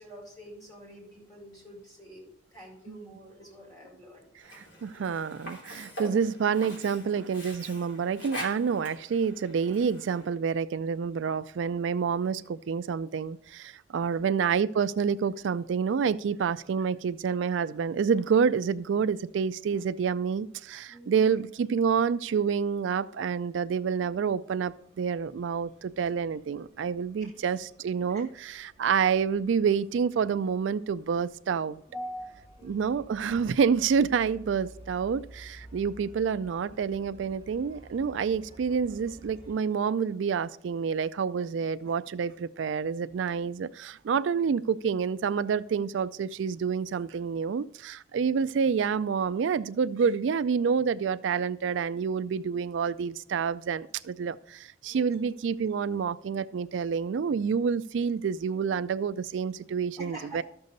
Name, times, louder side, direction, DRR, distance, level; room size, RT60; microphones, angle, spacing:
voice 1, 0.0-4.3 14.0-14.4 20.9-21.4 27.2-27.3 28.1-28.2 31.9-33.1 48.3-48.5 54.8-55.2 60.0-60.4, equal, 20° left, 4.2 m, -45 dB
Sink (filling or washing), 4.4-10.3, left 1 dB, 65° left, 3.4 m, -44 dB
voice 2, 4.6-31.8 32.7-60.4, right 6 dB, 75° right, 0.4 m, -28 dB
sound 1, 24.5-39.5, right 1 dB, 40° left, 2.7 m, -53 dB
13.0 x 6.8 x 4.0 m
head